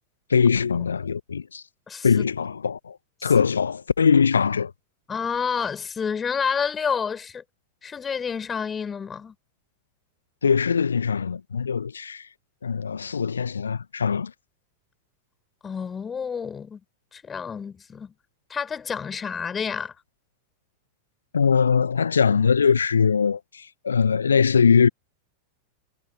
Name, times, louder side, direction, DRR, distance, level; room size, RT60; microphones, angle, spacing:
voice 1, 0.3-1.6 2.0-3.0 3.2-4.7 10.4-12.2 12.6-14.3 21.3-24.9, left 6 dB, 70° left, 1.1 m, -21 dB
voice 2, 1.9-2.2 3.2-3.3 5.1-7.4 7.8-9.3 15.6-16.8 17.1-18.1 18.5-19.9, left 6 dB, 20° left, 4.8 m, -29 dB
figure-of-eight pair, 90°, 0 cm